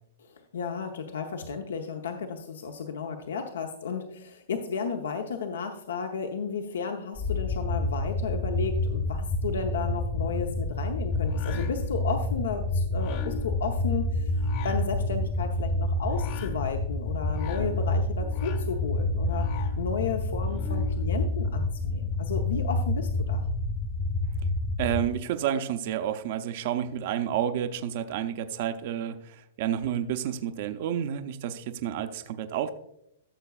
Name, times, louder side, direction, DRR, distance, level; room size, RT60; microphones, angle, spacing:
voice 1, 0.2-14.3 14.6-19.5 19.8-23.4, left 5 dB, 85° left, 5 dB, 0.8 m, -33 dB
sound 1, 7.2-25.1, left 2 dB, 20° left, 0.6 m, -28 dB
sound 2, 11.1-21.1, left 7 dB, 50° left, 1.1 m, -41 dB
voice 2, 24.8-32.7, right 10 dB, 55° right, 8 dB, 0.6 m, -30 dB
14.0 x 6.7 x 2.4 m, 0.76 s
hypercardioid pair, 140°, 0 cm